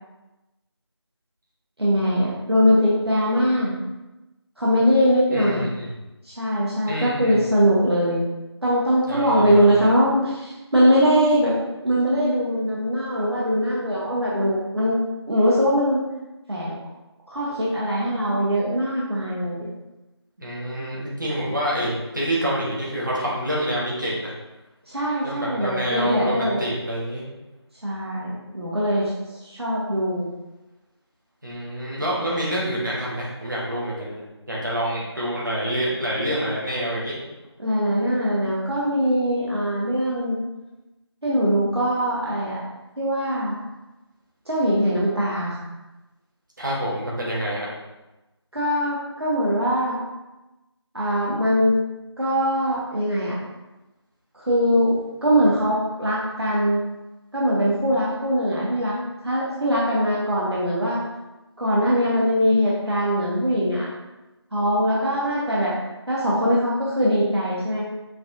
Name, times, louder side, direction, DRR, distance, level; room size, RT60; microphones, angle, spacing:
voice 1, 1.8-3.8 4.6-5.7 6.2-8.2 8.6-11.6 11.8-15.0 15.3-16.0 16.5-16.8 17.3-19.7 24.9-26.6 27.8-29.1 29.4-30.3 37.6-40.4 41.2-42.6 43.0-43.6 44.5-45.7 48.5-50.0 50.9-51.8 52.2-53.4 54.3-56.8 57.3-59.0 59.2-61.0 61.6-63.9 64.5-65.8 66.1-67.9, equal, 60° right, -6 dB, 1.0 m, -21 dB
voice 2, 5.3-5.9 6.9-7.5 9.1-9.8 20.4-24.3 25.2-27.2 31.4-34.2 34.5-37.2 46.6-47.7, equal, 45° right, -6 dB, 1.2 m, -27 dB
5.7 x 2.6 x 2.6 m, 1.0 s
figure-of-eight pair, 175°, 15 cm